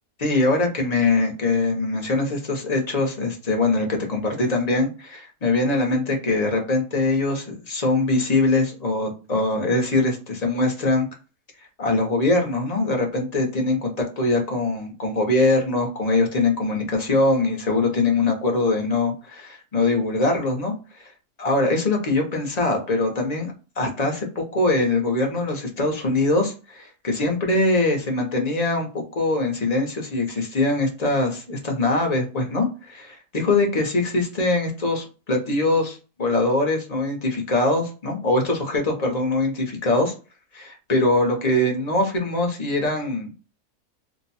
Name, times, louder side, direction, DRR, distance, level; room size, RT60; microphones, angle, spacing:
voice 1, 0.2-11.1 11.8-20.7 21.4-40.1 40.5-43.3, left 2 dB, 35° left, 2 dB, 0.7 m, -22 dB
2.7 x 2.2 x 4.1 m, 0.33 s
omnidirectional pair, 1.6 m